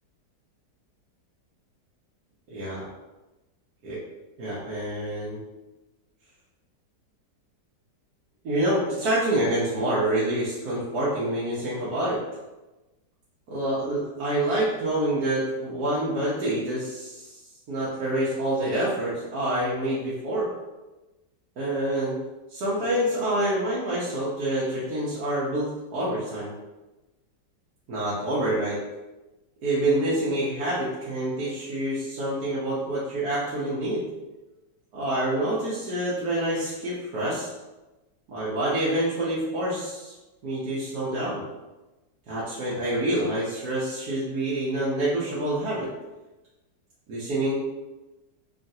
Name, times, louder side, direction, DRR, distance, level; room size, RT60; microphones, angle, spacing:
voice 1, 2.5-2.9 3.8-4.0 4.4-5.4 8.4-12.2 13.5-17.4 17.7-20.5 21.6-22.2 22.5-26.5 27.9-28.8 29.6-34.0 34.9-37.5 38.3-40.1 40.4-41.4 42.3-45.9 47.1-47.5, right 1 dB, 70° right, -8 dB, 1.2 m, -27 dB
3.1 x 2.4 x 2.6 m, 1.1 s
omnidirectional pair, 1.8 m